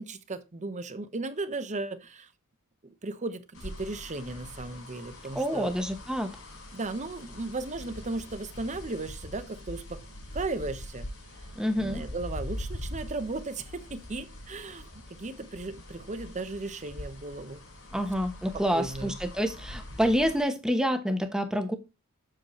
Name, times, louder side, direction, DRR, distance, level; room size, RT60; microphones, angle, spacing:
voice 1, 0.0-2.3 2.8-5.8 6.7-10.0 10.3-11.1 11.7-14.9 15.2-17.6 17.9-18.0 18.5-19.2, right 3 dB, 35° right, 0.9 m, -36 dB
sound 1, 3.5-20.4, left 1 dB, 70° left, 4.5 m, -43 dB
voice 2, 5.3-6.3 11.6-12.0 17.9-21.7, equal, 5° right, 1.0 m, -28 dB
7.8 x 6.6 x 3.1 m
head